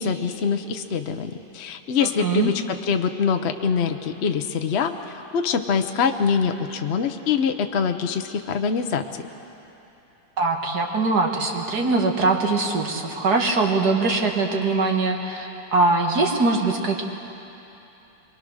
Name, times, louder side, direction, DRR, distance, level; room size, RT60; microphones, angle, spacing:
voice 1, 0.0-4.9 5.3-9.0, left 6 dB, 55° left, 6 dB, 0.7 m, -24 dB
voice 2, 2.0-2.5 10.4-17.0, right 3 dB, 50° right, 2 dB, 2.1 m, -22 dB
24.0 x 23.5 x 6.4 m, 3.0 s
omnidirectional pair, 2.2 m